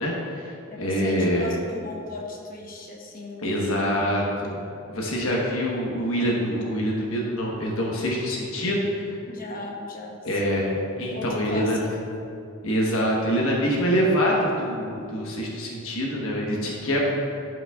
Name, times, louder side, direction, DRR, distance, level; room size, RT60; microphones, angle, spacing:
voice 1, 0.0-0.5 0.8-1.5 3.4-4.6 4.9-8.8 10.2-11.8 12.6-17.1, equal, 80° left, -3 dB, 1.1 m, -25 dB
voice 2, 0.7-3.7 9.3-10.4 11.1-12.0, left 2 dB, 45° left, -1 dB, 1.0 m, -37 dB
11.5 x 5.3 x 2.3 m, 2.6 s
head